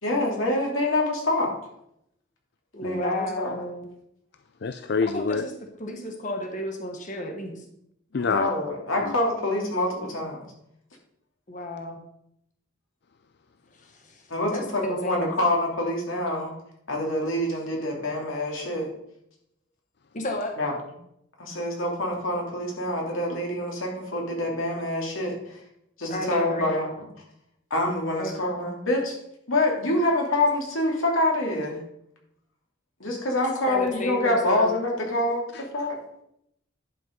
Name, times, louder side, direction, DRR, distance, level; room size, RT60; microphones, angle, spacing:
voice 1, 0.0-1.7 2.8-3.5 8.2-10.5 14.3-16.5 16.9-18.9 20.6-20.7 21.4-25.6 26.0-27.1 27.7-29.2 29.5-31.8 33.0-36.0, left 1 dB, 90° left, -1 dB, 2.8 m, -26 dB
voice 2, 2.7-3.9 5.1-5.5 5.8-7.6 11.5-12.0 13.8-15.3 20.1-20.5 26.1-26.7 28.2-28.3 33.7-34.8, left 1 dB, 40° left, 3 dB, 1.3 m, -32 dB
voice 3, 4.6-5.4 8.1-8.5, left 5 dB, 55° left, 10 dB, 0.4 m, -26 dB
11.0 x 5.5 x 5.3 m, 0.76 s
head